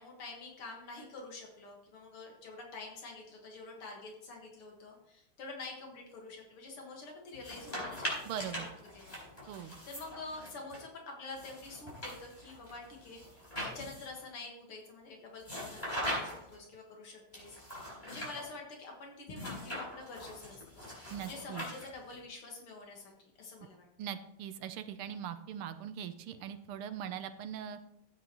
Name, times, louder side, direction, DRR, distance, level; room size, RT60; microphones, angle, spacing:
voice 1, 0.0-20.9 21.2-23.1 23.4-23.9, left 3 dB, 80° left, 0 dB, 2.6 m, -47 dB
sound 1, 7.3-10.8 11.3-14.2 15.4-16.6 17.3-18.4 19.3-22.1, equal, 15° left, 4.7 m, -41 dB
voice 2, 8.2-8.7 9.5-9.8 21.1-21.6 24.0-27.8, right 9 dB, 85° right, 10 dB, 1.5 m, -41 dB
13.5 x 9.2 x 3.0 m, 0.78 s
omnidirectional pair, 2.3 m